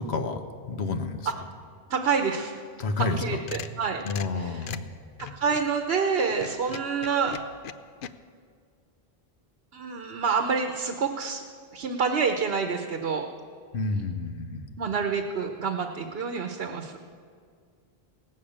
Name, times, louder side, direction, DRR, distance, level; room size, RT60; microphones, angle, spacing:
voice 1, 0.0-1.3 2.8-3.2 4.0-4.8 13.7-14.7, left 3 dB, 85° left, 7 dB, 1.2 m, -30 dB
voice 2, 1.9-2.6 3.2-4.0 4.3-4.7 5.2-7.4 9.7-11.4 11.7-13.3 14.8-17.0, right 5 dB, 75° right, 5 dB, 1.1 m, -27 dB
sound 1, 3.1-5.8 6.3-8.1, left 8 dB, 60° left, 0.7 m, -40 dB
17.5 x 6.8 x 8.6 m, 2.1 s
omnidirectional pair, 1.0 m